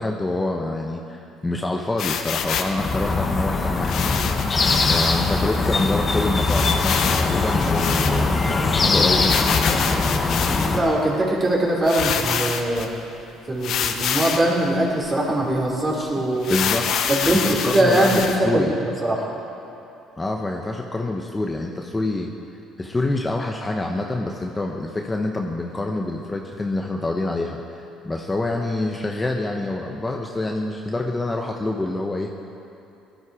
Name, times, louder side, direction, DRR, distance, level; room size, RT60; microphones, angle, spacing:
voice 1, 0.0-4.4 4.9-9.9 16.5-16.9 17.2-18.7 20.2-22.3 22.8-27.6 28.0-32.3, left 2 dB, 15° left, 1 dB, 1.0 m, -26 dB
sound 1, 2.0-2.8 3.8-5.2 5.6-5.7 5.9-6.0 6.5-8.5 9.2-10.9 11.5-11.6 11.8-12.9 13.6-14.5 15.0-15.1 15.5-15.6 16.4-18.4, left 7 dB, 65° left, 1.0 m, -26 dB
sound 2, 2.8-10.8, left 3 dB, 35° left, 1.3 m, -21 dB
voice 2, 10.7-12.9 13.5-16.5 17.1-18.6 19.0-19.2, right 1 dB, 25° right, -3 dB, 3.8 m, -21 dB
18.0 x 11.5 x 5.0 m, 2.8 s
supercardioid pair, 90°, 0 cm